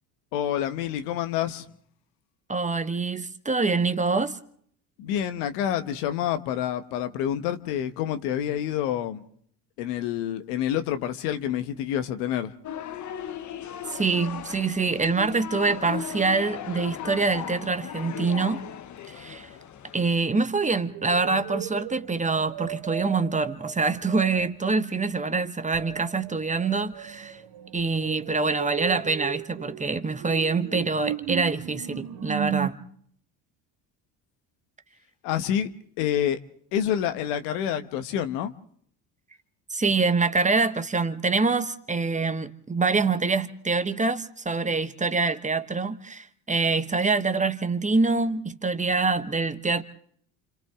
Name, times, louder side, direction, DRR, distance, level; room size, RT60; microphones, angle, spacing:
voice 1, 0.3-1.6 5.0-9.2 9.8-12.5 35.2-35.7 36.0-36.4 36.7-38.5, left 10 dB, 80° left, 1.3 m, -27 dB
voice 2, 2.5-4.4 13.9-18.6 19.1-19.5 19.9-27.4 27.7-32.8 39.7-49.8, right 4 dB, 15° right, 1.1 m, -25 dB
sound 1, 12.6-20.2, left 9 dB, 40° left, 0.9 m, -37 dB
sound 2, 20.9-24.6 25.7-32.7, right 12 dB, 65° right, 1.6 m, -36 dB
29.5 x 26.0 x 3.7 m
supercardioid pair, 90°, 45 cm